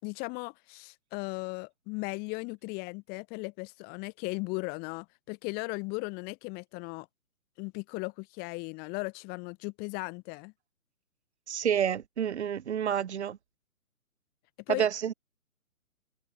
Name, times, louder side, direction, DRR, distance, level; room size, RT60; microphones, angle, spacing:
voice 1, 0.0-7.1 7.6-10.5 14.7-14.9, left 29 dB, 20° left, 4.0 m, -37 dB
voice 2, 11.5-13.4 14.7-15.1, right 9 dB, 50° right, 1.3 m, -29 dB
figure-of-eight pair, 135°, 43 cm